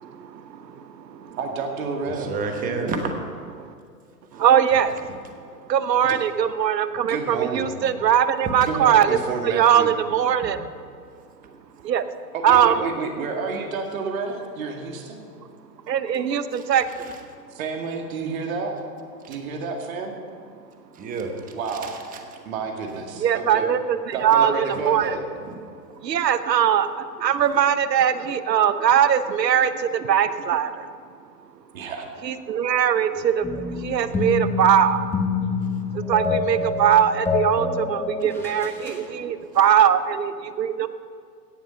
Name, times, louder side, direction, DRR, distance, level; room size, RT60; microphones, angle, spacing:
voice 1, 0.0-1.4 3.6-3.7 4.3-5.0 5.7-9.2 9.4-10.6 11.8-12.0 12.4-12.7 15.9-16.9 23.2-25.1 26.0-30.9 32.2-35.0 35.9-40.9, right 9 dB, 85° right, 12 dB, 0.9 m, -21 dB
voice 2, 1.4-2.3 7.1-7.8 8.7-10.0 12.3-15.3 17.5-18.8 19.3-20.2 21.5-21.9 22.5-23.7 24.1-25.2 31.7-32.1, right 4 dB, 55° right, 2 dB, 2.2 m, -30 dB
voice 3, 2.1-3.1 4.3-4.4 5.1-5.2 8.4-8.6 10.4-10.5 16.5-17.2 19.2-19.4 20.9-22.2 25.4-25.5 26.1-26.2 38.9-39.0, right 4 dB, 15° right, 4 dB, 1.2 m, -31 dB
sound 1, 33.4-39.0, left 4 dB, 5° left, 0.6 m, -27 dB
17.0 x 7.1 x 5.7 m, 2.3 s
hypercardioid pair, 135°, 48 cm